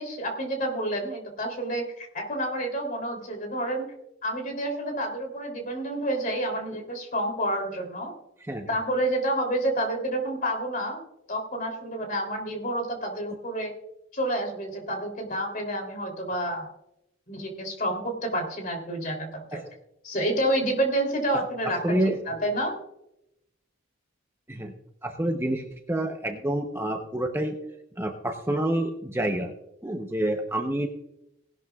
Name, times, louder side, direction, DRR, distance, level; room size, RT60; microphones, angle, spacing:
voice 1, 0.0-3.9 4.2-8.1 8.7-11.0 11.3-13.7 14.1-16.7 17.3-19.6 20.0-22.8, right 1 dB, 40° left, 4 dB, 3.1 m, -29 dB
voice 2, 21.8-22.2 24.5-24.7 25.0-27.5 28.0-29.5 29.8-30.9, right 1 dB, 10° right, 3 dB, 0.7 m, -28 dB
18.5 x 12.0 x 2.4 m, 0.84 s
head